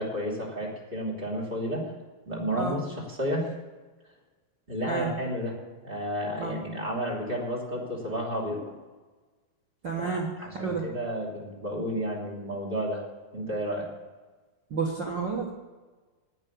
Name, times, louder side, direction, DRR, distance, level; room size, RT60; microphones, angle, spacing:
voice 1, 0.0-1.8 2.3-3.5 4.7-5.5 5.8-8.7 10.0-13.0 13.3-13.9, equal, 15° right, -3 dB, 2.6 m, -31 dB
voice 2, 9.8-10.8 14.7-15.5, right 5 dB, 55° right, -1 dB, 1.3 m, -30 dB
11.0 x 8.9 x 8.5 m, 1.3 s
omnidirectional pair, 4.2 m